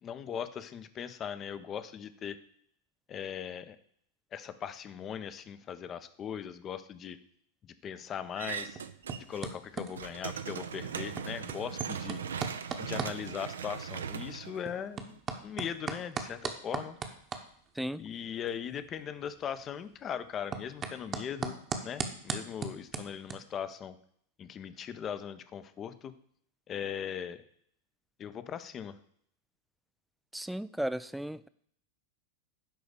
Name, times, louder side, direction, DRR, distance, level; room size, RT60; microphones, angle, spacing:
voice 1, 0.0-2.4 3.1-3.8 4.3-7.2 7.6-8.8 9.3-12.2 12.8-17.0 18.0-21.6 21.8-24.0 24.4-26.1 26.7-27.4 28.2-29.0, left 8 dB, 25° left, 12 dB, 0.7 m, -39 dB
sound 1, 8.2-23.3, right 5 dB, 25° right, 1.0 m, -41 dB
sound 2, 8.4-9.5 9.8-15.2, right 7 dB, 65° right, 0.5 m, -39 dB
voice 2, 30.3-31.5, right 1 dB, ahead, 15 dB, 0.3 m, -35 dB
10.5 x 4.0 x 6.7 m, 0.66 s
figure-of-eight pair, 90°, 0 cm